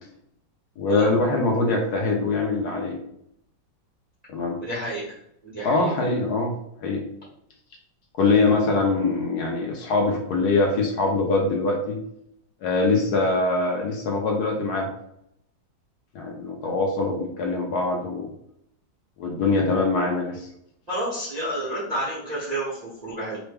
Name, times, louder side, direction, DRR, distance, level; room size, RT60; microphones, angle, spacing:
voice 1, 0.8-3.0 4.3-4.6 5.6-6.5 6.8-7.0 8.2-12.0 12.6-14.9 16.1-18.3 19.2-20.5, left 3 dB, 70° left, 1 dB, 1.1 m, -23 dB
voice 2, 4.6-5.2 5.4-5.9 20.9-23.4, right 1 dB, 40° right, -8 dB, 0.6 m, -30 dB
3.3 x 2.1 x 3.3 m, 0.74 s
omnidirectional pair, 1.9 m